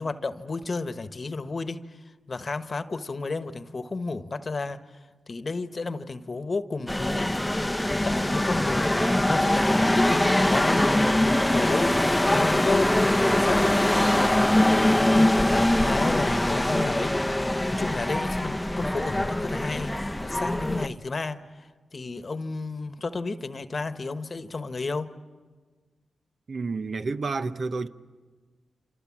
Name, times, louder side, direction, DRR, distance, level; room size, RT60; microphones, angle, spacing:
voice 1, 0.0-2.0 2.3-4.8 5.3-7.4 8.0-14.4 15.2-19.9 20.2-25.1, left 3 dB, 45° left, 1.2 m, -32 dB
sound 1, 6.9-20.9, left 1 dB, 10° left, 0.8 m, -23 dB
voice 2, 26.5-27.9, right 4 dB, 60° right, 0.8 m, -30 dB
27.5 x 26.5 x 7.4 m
cardioid pair, 55°, 0 cm